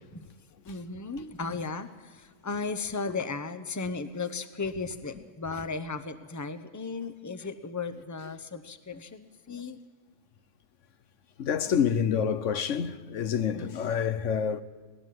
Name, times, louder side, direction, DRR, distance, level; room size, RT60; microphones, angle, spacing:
voice 1, 0.7-9.8 13.5-13.8, left 4 dB, 15° left, 0.9 m, -36 dB
voice 2, 11.4-14.6, left 7 dB, 80° left, 1.2 m, -27 dB
20.0 x 19.5 x 7.7 m
omnidirectional pair, 1.3 m